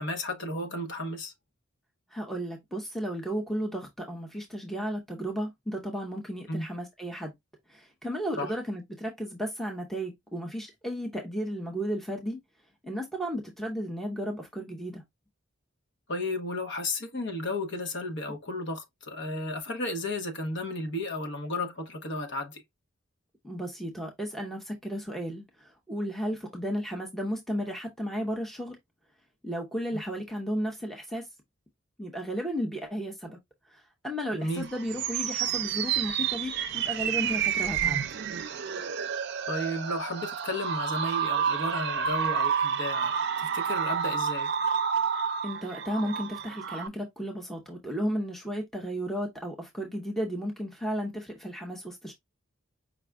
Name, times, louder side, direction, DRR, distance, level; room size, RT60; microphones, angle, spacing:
voice 1, 0.0-1.3 6.5-6.7 8.4-8.5 16.1-22.6 34.3-34.7 39.5-44.5, left 1 dB, 60° left, 0.9 m, -33 dB
voice 2, 2.1-7.3 7.7-12.4 12.8-15.0 23.4-28.8 29.4-31.3 32.0-33.4 33.7-38.0 45.4-52.1, equal, ahead, 0.7 m, -34 dB
sound 1, 34.5-46.9, right 7 dB, 55° right, 0.5 m, -29 dB
5.1 x 2.2 x 3.5 m
head